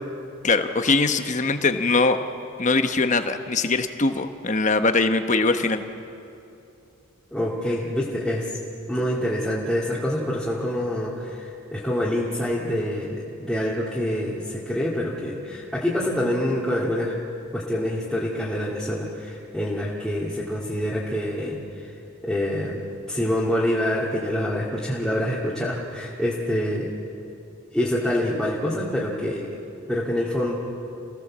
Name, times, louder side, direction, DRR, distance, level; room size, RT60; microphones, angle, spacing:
voice 1, 0.4-2.2 2.6-5.8, left 3 dB, 35° left, 8 dB, 1.0 m, -21 dB
voice 2, 7.3-8.5 8.9-17.1 17.5-21.9 22.2-26.9 27.7-29.5 29.9-30.6, left 1 dB, ahead, -8 dB, 2.2 m, -26 dB
28.5 x 16.5 x 7.4 m, 2.7 s
head